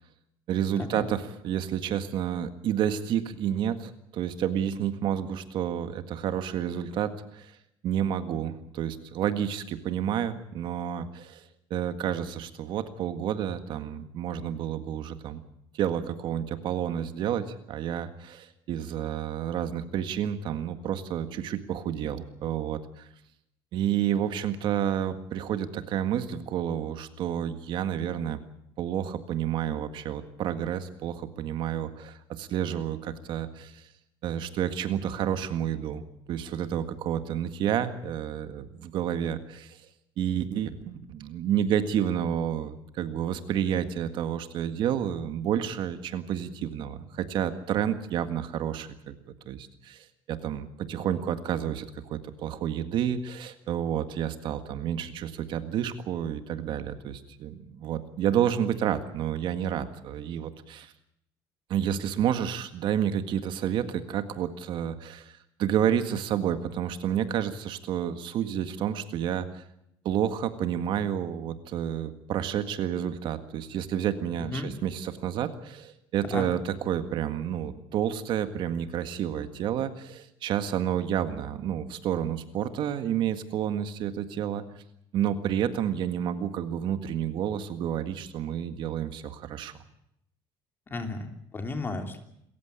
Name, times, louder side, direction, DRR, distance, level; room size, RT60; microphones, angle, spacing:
voice 1, 0.5-7.5 7.8-11.4 11.7-15.4 15.7-23.1 23.7-28.4 28.8-33.8 34.2-36.0 36.3-39.8 40.2-49.2 49.5-60.9 61.7-69.6 70.0-84.6 85.1-89.7, right 9 dB, 60° right, 9 dB, 1.8 m, -30 dB
voice 2, 90.9-92.2, left 3 dB, 25° left, 5 dB, 3.1 m, -34 dB
27.5 x 15.0 x 8.3 m, 0.76 s
cardioid pair, 140°, 9 cm